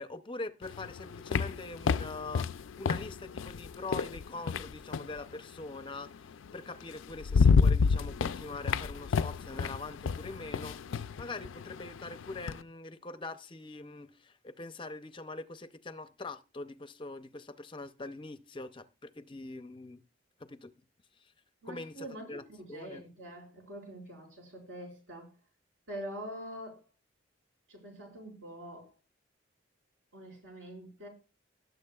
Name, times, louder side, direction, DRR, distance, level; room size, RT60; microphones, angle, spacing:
voice 1, 0.0-20.0 20.4-20.7 21.2-21.3 21.6-22.4 22.7-23.0, left 3 dB, 25° left, 0.5 m, -43 dB
sound 1, 0.6-5.2 6.5-6.6 7.0-12.6, left 5 dB, 80° left, 0.4 m, -29 dB
voice 2, 21.6-25.3 25.9-26.8 27.7-28.9 30.1-31.1, right 1 dB, 75° right, 5.3 m, -45 dB
18.5 x 7.9 x 2.3 m
head